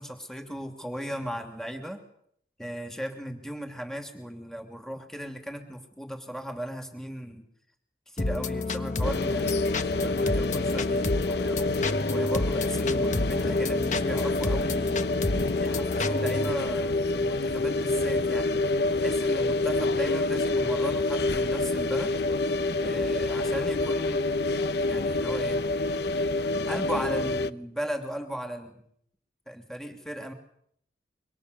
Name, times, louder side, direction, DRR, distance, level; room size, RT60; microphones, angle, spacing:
voice 1, 0.0-2.0 2.6-7.4 8.1-9.6 10.0-11.8 12.1-15.1 15.5-18.7 19.0-22.2 22.8-24.3 24.9-25.8 26.7-28.8 29.5-30.3, equal, 5° left, 4 dB, 2.9 m, -36 dB
sound 1, 8.2-16.5, left 3 dB, 45° left, 1.4 m, -30 dB
sound 2, 9.0-27.5, left 2 dB, 70° left, 0.9 m, -27 dB
27.0 x 25.0 x 7.0 m, 0.70 s
head